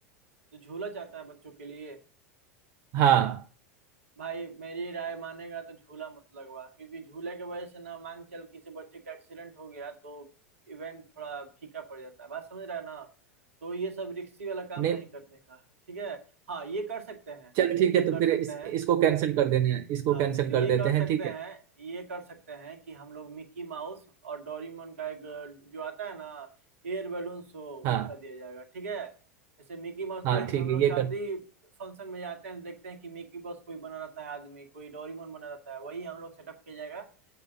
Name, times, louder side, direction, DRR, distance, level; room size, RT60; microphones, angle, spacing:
voice 1, 0.5-2.0 4.2-10.3 10.7-13.1 13.6-15.6 15.9-17.5 17.9-18.7 20.1-26.5 26.8-29.1 29.7-31.4 31.8-37.1, right 4 dB, 70° right, 1.6 m, -39 dB
voice 2, 2.9-3.4 14.8-15.0 17.6-21.2 27.8-28.1 30.2-31.1, right 10 dB, 45° right, 0.6 m, -25 dB
8.3 x 5.0 x 7.2 m
figure-of-eight pair, 85°, 8 cm